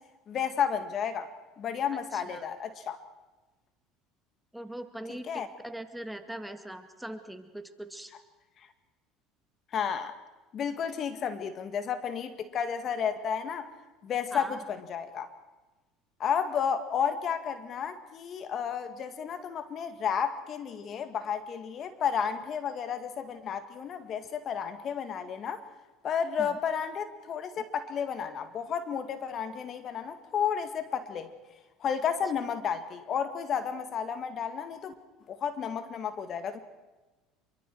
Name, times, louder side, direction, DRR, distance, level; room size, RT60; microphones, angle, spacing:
voice 1, 0.3-1.3 1.6-3.0 5.1-5.5 9.7-10.2 10.5-13.7 14.0-15.3 16.2-25.6 26.0-31.3 31.8-34.9 35.3-36.6, left 7 dB, 45° left, 10 dB, 1.8 m, -32 dB
voice 2, 1.9-2.5 4.5-8.1 14.3-14.6 26.4-26.6, right 1 dB, 5° right, 7 dB, 1.9 m, -41 dB
27.0 x 23.5 x 4.7 m, 1.2 s
supercardioid pair, 95°, 0 cm